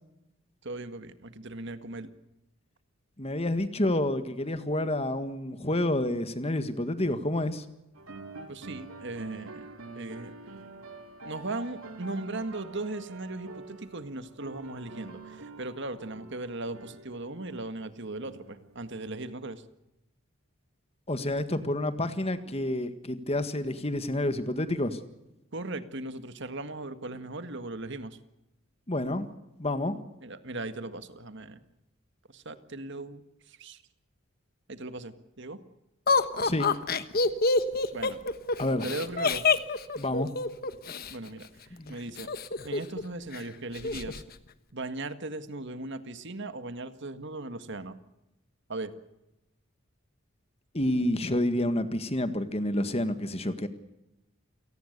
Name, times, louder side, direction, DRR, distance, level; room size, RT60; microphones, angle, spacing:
voice 1, 0.6-2.1 8.5-9.7 9.9-10.3 11.2-19.6 25.5-28.2 30.2-31.6 32.3-33.2 33.5-33.8 34.7-35.6 37.9-38.2 38.8-39.5 41.1-42.3 42.6-44.2 44.7-48.0 48.7-48.9, right 2 dB, 55° right, 10 dB, 1.8 m, -38 dB
voice 2, 3.2-7.7 21.1-25.0 28.9-29.3 29.6-30.0 36.4-36.7 38.6-38.9 40.0-40.3 41.7-42.0 50.7-53.7, left 1 dB, 30° left, 10 dB, 1.7 m, -29 dB
sound 1, 7.9-19.3, right 3 dB, 80° right, 2.6 m, -46 dB
Laughter, 36.1-41.1 42.2-43.0 43.3-43.4 43.8-44.2, left 4 dB, 45° left, 1.3 m, -26 dB
28.5 x 18.5 x 6.8 m, 0.92 s
head